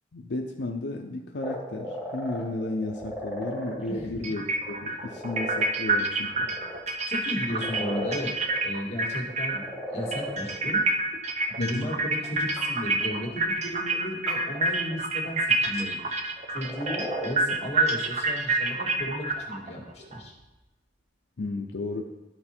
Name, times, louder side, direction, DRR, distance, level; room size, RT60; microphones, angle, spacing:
voice 1, 0.1-6.5 11.6-11.9 21.4-22.1, left 2 dB, 75° left, 2 dB, 0.6 m, -33 dB
sound 1, 1.4-4.0 4.5-5.7 6.0-6.8 7.4-8.6 9.4-10.6 11.8-11.9 12.6-13.3 13.7-13.8 14.3-14.4 16.5-17.5, equal, 5° right, 2.8 m, -36 dB
sound 2, 3.0-3.1 4.2-9.7 10.0-20.2, right 3 dB, 40° right, 0.7 m, -28 dB
voice 2, 3.9-4.3 7.1-8.3 8.6-9.6 9.9-10.8 11.6-16.2 16.5-20.3, equal, 35° left, -1 dB, 1.9 m, -34 dB
12.5 x 4.3 x 4.4 m, 1.1 s
head